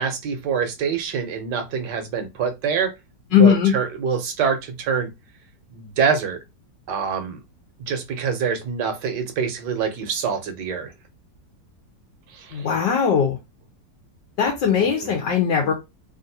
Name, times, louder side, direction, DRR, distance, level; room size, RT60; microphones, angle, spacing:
voice 1, 0.0-2.9 3.3-5.1 5.7-6.4 6.9-7.4 7.8-10.9 12.3-12.7 14.8-15.1 15.6-15.7, right 6 dB, 75° right, 1.4 m, -25 dB
voice 2, 3.3-3.7 12.5-13.4 14.4-15.7, left 7 dB, 75° left, 1.4 m, -19 dB
3.5 x 2.4 x 2.7 m
omnidirectional pair, 1.9 m